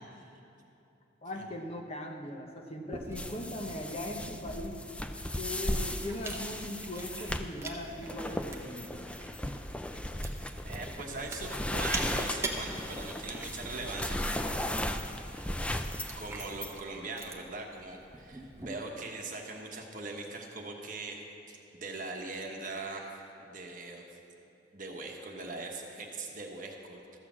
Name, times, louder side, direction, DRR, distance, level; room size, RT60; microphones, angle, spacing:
voice 1, 1.2-4.8 5.3-9.0, left 1 dB, 30° left, 2 dB, 0.9 m, -39 dB
Chewing mastication, 2.9-18.7, right 2 dB, 15° right, 0.8 m, -45 dB
sound 1, 3.2-16.8, left 1 dB, 5° left, 0.4 m, -36 dB
voice 2, 10.6-14.5 16.2-23.2 23.4-24.0 24.7-27.2, right 3 dB, 45° right, 1 dB, 1.2 m, -41 dB
13.0 x 6.7 x 7.3 m, 2.8 s
head